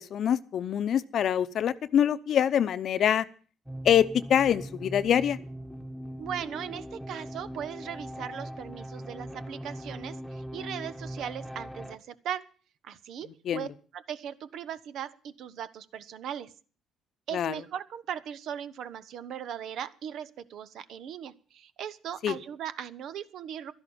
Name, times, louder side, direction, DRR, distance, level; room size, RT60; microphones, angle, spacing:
voice 1, 0.0-3.2 3.8-5.4 13.5-13.7 17.3-17.5 22.2-22.4, left 9 dB, 60° left, 14 dB, 0.7 m, -25 dB
sound 1, 3.7-12.0, equal, 5° right, 1.3 m, -40 dB
voice 2, 6.2-12.5 12.8-13.7 13.9-16.5 17.3-23.7, right 9 dB, 70° right, 15 dB, 0.9 m, -38 dB
12.5 x 11.0 x 7.1 m, 0.41 s
supercardioid pair, 70°, 0 cm